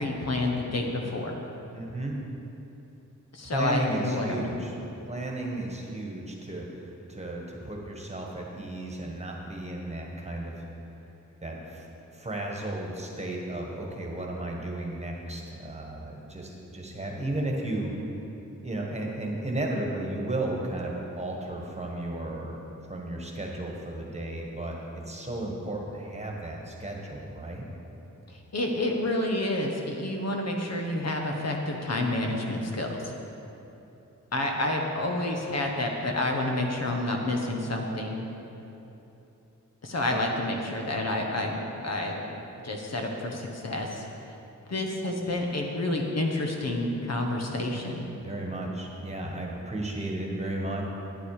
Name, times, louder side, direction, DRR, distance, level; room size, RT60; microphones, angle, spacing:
voice 1, 0.0-1.4 3.3-4.6 28.3-33.1 34.3-38.2 39.8-42.3 42.6-44.1 44.7-48.1, left 1 dB, 55° left, 1 dB, 1.3 m, -29 dB
voice 2, 1.7-2.2 3.4-4.7 5.1-10.6 11.4-11.9 12.1-17.9 18.6-24.8 25.1-27.6 40.1-40.2 48.2-50.9, right 1 dB, 20° right, -1 dB, 1.5 m, -34 dB
12.0 x 10.0 x 4.9 m, 2.9 s
wide cardioid pair, 145°, 31 cm